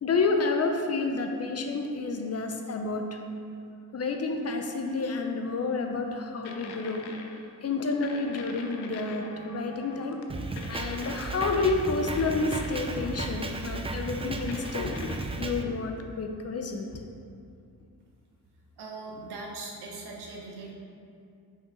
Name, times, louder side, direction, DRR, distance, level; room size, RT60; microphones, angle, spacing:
voice 1, 0.0-3.2 3.9-7.1 7.6-10.2 10.7-16.9, left 3 dB, 40° left, 4 dB, 0.6 m, -29 dB
sound 1, 6.5-7.6 8.0-10.2 10.6-13.4 14.5-15.2, left 4 dB, 85° left, 0.7 m, -43 dB
Drum kit, 10.3-15.6, right 2 dB, 15° right, 0.3 m, -34 dB
voice 2, 18.8-20.7, right 3 dB, 85° right, -1 dB, 1.1 m, -40 dB
5.8 x 5.1 x 3.9 m, 2.4 s
cardioid pair, 110°, 38 cm